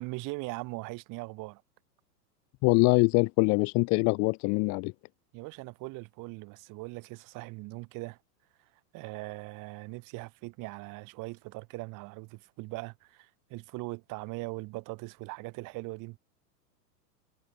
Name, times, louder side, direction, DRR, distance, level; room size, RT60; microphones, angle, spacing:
voice 1, 0.0-1.6 5.3-8.2 8.9-16.2, right 24 dB, 40° right, 2.4 m, -40 dB
voice 2, 2.6-4.9, left 28 dB, 35° left, 0.8 m, -24 dB
hypercardioid pair, 125°, 49 cm